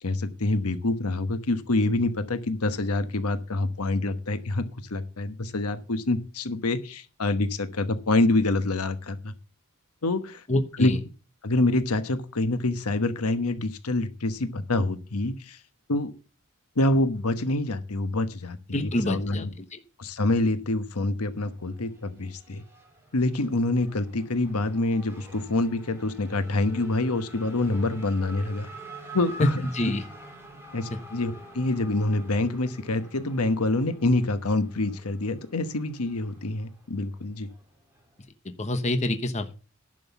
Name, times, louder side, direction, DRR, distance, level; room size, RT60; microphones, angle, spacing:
voice 1, 0.0-9.3 10.0-10.4 10.8-10.9 11.4-15.6 15.9-16.1 16.8-19.5 20.0-22.6 23.1-28.7 29.1-29.6 30.7-37.5, left 2 dB, 90° left, 10 dB, 1.2 m, -26 dB
voice 2, 10.5-11.0 18.7-19.8 29.4-29.5 29.7-30.0 38.4-39.5, left 1 dB, 30° left, 8 dB, 1.0 m, -27 dB
Race car auto racing / Accelerating revving vroom, 21.3-38.2, right 1 dB, 10° right, 3.2 m, -47 dB
11.0 x 6.2 x 7.0 m, 0.34 s
head